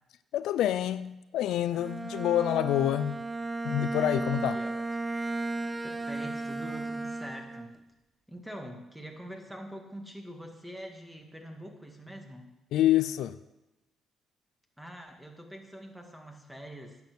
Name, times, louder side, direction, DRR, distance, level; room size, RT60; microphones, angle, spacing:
voice 1, 0.3-3.2 3.6-4.6 12.7-13.4, left 12 dB, 85° left, 0.4 m, -27 dB
Bowed string instrument, 1.7-7.8, right 2 dB, 20° right, 0.6 m, -34 dB
voice 2, 4.5-4.9 5.8-7.8 8.3-12.5 14.8-17.0, equal, 5° right, 1.9 m, -44 dB
10.5 x 7.3 x 6.3 m
cardioid pair, 90°, 0 cm